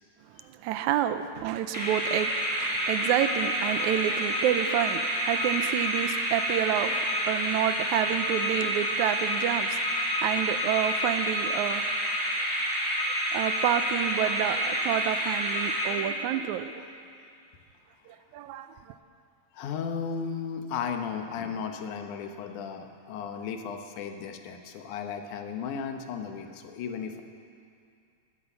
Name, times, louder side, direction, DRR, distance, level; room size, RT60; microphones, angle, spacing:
voice 1, 0.4-9.9 10.2-11.9 13.3-16.8 18.1-18.9, right 11 dB, 80° right, 11 dB, 2.0 m, -29 dB
sound 1, 1.7-16.4, equal, 5° left, 2.9 m, -29 dB
voice 2, 19.5-27.2, left 6 dB, 85° left, 5 dB, 2.5 m, -35 dB
19.5 x 9.9 x 6.8 m, 2.4 s
omnidirectional pair, 3.5 m